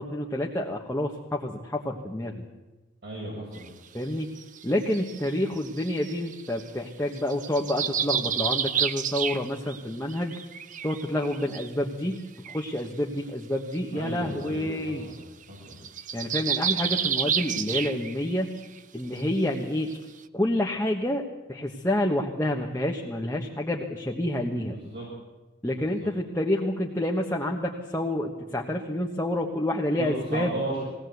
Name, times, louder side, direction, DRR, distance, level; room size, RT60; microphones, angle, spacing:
voice 1, 0.0-2.4 3.9-4.3 4.6-10.4 10.8-15.1 16.1-18.5 18.9-19.9 20.3-21.2 21.5-24.8 25.6-30.5, left 1 dB, 15° left, -1 dB, 1.3 m, -28 dB
voice 2, 3.0-3.7 13.9-15.2 15.5-15.8 24.6-25.1 25.7-26.1 30.0-30.8, right 1 dB, 60° right, -5 dB, 7.0 m, -35 dB
sound 1, 3.5-3.7 4.4-6.7 7.2-9.8 10.1-11.7 12.2-12.3 12.4-12.7 13.7-13.8 14.1-14.2 14.5-14.7 15.0-15.2 15.4-18.3 18.6-18.8 19.2-19.3 19.9-20.0, right 8 dB, 40° right, 0.7 m, -30 dB
21.0 x 18.0 x 8.1 m, 1.1 s
head